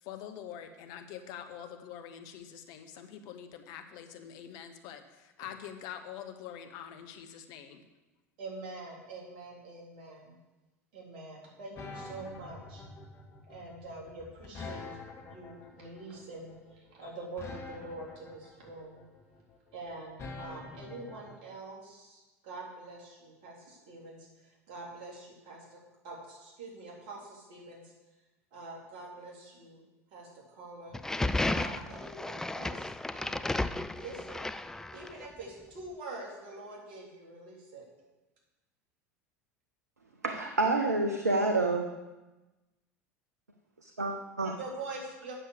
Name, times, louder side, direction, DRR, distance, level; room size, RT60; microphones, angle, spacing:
voice 1, 0.0-7.8, left 9 dB, 55° left, 7 dB, 1.0 m, -45 dB
voice 2, 8.4-10.4 10.9-12.8 13.5-14.8 15.2-19.0 19.7-25.8 26.0-27.9 28.5-29.8 30.1-31.0 31.5-33.7 34.0-34.5 34.9-37.8 44.6-45.3, right 2 dB, 55° right, -3 dB, 3.4 m, -45 dB
sound 1, 11.8-21.3, left 3 dB, 35° left, 1.8 m, -45 dB
sound 2, 30.9-35.3, left 2 dB, 5° left, 0.4 m, -33 dB
voice 3, 40.2-42.0 43.8-44.6, right 3 dB, 85° right, 5 dB, 0.6 m, -28 dB
8.8 x 6.5 x 6.7 m, 1.1 s
figure-of-eight pair, 75°, 8 cm